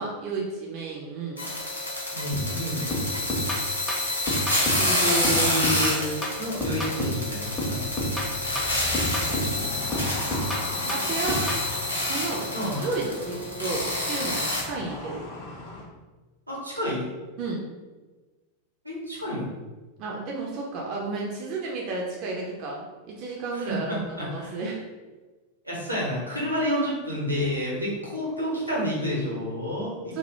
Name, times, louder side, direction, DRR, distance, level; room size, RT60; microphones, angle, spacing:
voice 1, 0.0-1.5 10.8-11.4 11.9-12.5 12.8-15.3 17.4-17.6 20.0-24.8 30.1-30.2, right 3 dB, 40° right, -2 dB, 0.4 m, -32 dB
sound 1, 1.4-14.6, left 1 dB, 80° left, 0.7 m, -28 dB
voice 2, 2.1-2.9 4.7-7.8 12.5-12.9 16.5-17.0 18.8-19.5 23.5-24.6 25.6-30.2, equal, 85° right, -5 dB, 0.7 m, -29 dB
sound 2, 2.3-2.6 2.9-4.9 5.2-7.3 7.6-9.6 9.9-11.7, equal, 5° left, 0.6 m, -30 dB
sound 3, 3.7-15.9, left 2 dB, 45° left, 0.6 m, -40 dB
2.1 x 2.1 x 3.0 m, 1.2 s
figure-of-eight pair, 90°, 0 cm